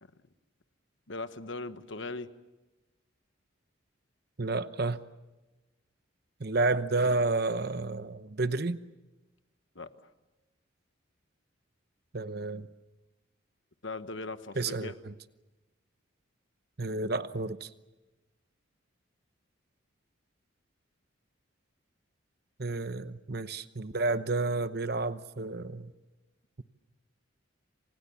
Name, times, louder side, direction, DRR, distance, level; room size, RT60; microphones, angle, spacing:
voice 1, 1.1-2.3 9.7-9.9 13.8-14.9, left 3 dB, 65° left, 1.2 m, -39 dB
voice 2, 4.4-5.0 6.4-8.8 12.1-12.7 14.6-15.1 16.8-17.7 22.6-25.9, right 3 dB, 50° right, 0.9 m, -30 dB
28.5 x 26.0 x 7.2 m
head